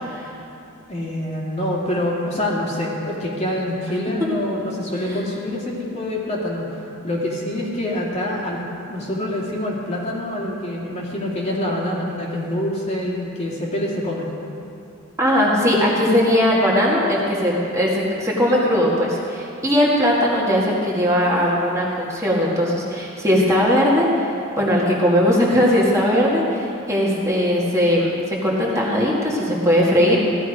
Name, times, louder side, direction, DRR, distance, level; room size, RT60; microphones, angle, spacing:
voice 1, 0.9-6.6 7.0-8.6 8.9-14.3, left 1 dB, 30° left, -3 dB, 2.2 m, -25 dB
voice 2, 15.2-30.2, equal, 15° right, -5 dB, 1.9 m, -19 dB
15.5 x 13.0 x 5.0 m, 2.7 s
head